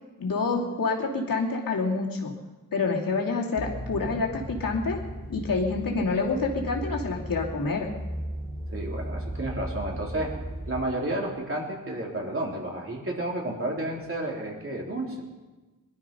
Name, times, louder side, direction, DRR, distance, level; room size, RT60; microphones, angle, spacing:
voice 1, 0.2-2.3 2.7-5.0 5.3-7.9, left 4 dB, 80° left, -1 dB, 2.7 m, -27 dB
sound 1, 3.6-10.8, equal, 15° right, 4.3 m, -36 dB
voice 2, 8.7-10.3 10.7-15.2, right 1 dB, 40° right, -2 dB, 3.8 m, -31 dB
21.0 x 12.5 x 5.5 m, 1.2 s
wide cardioid pair, 85°, 33 cm